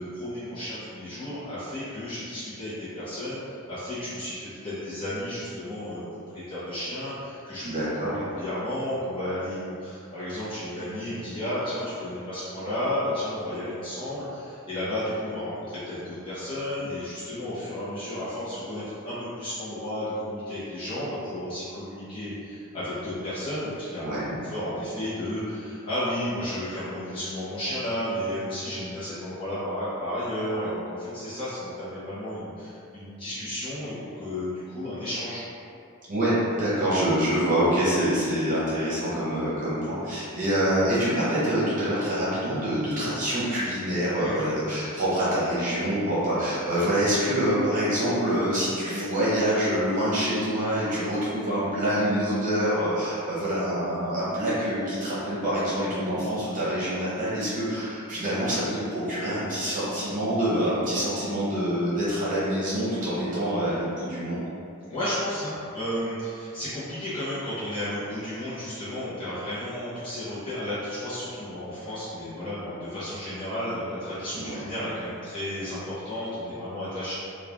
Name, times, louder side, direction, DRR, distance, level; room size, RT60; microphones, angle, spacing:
voice 1, 0.0-6.0 6.3-7.6 8.3-24.1 24.4-35.4 44.2-44.4 55.7-55.9 64.9-77.1, left 1 dB, 25° left, -14 dB, 0.9 m, -33 dB
voice 2, 7.6-8.3 24.0-24.3 36.1-64.4 74.3-74.6, equal, 40° right, -9 dB, 0.9 m, -26 dB
3.2 x 2.3 x 3.5 m, 2.5 s
head